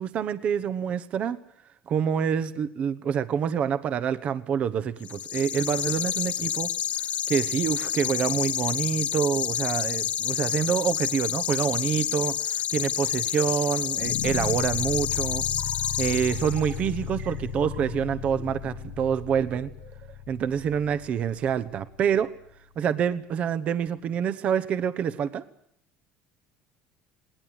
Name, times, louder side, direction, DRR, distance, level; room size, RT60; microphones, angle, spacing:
voice 1, 0.0-1.4 1.9-6.7 7.3-15.4 16.0-19.7 20.3-22.3 22.8-25.4, right 8 dB, 40° right, 12 dB, 1.2 m, -27 dB
sound 1, 5.0-16.9, left 10 dB, 45° left, 1.1 m, -29 dB
sound 2, 14.0-23.1, left 9 dB, 75° left, 1.4 m, -37 dB
sound 3, 14.9-20.1, right 8 dB, 70° right, 4.0 m, -48 dB
21.0 x 19.0 x 9.0 m, 0.73 s
cardioid pair, 130°, 3 cm